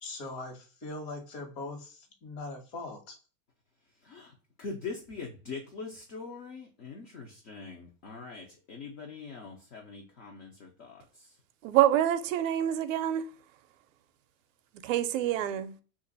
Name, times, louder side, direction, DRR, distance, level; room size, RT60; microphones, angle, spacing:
voice 1, 0.0-3.2, left 2 dB, 50° left, 1.2 m, -41 dB
voice 2, 4.0-11.3, left 4 dB, 30° left, 0.4 m, -43 dB
voice 3, 11.6-13.3 14.8-15.7, right 12 dB, 65° right, 0.5 m, -26 dB
2.9 x 2.5 x 3.9 m
supercardioid pair, 165°, 42 cm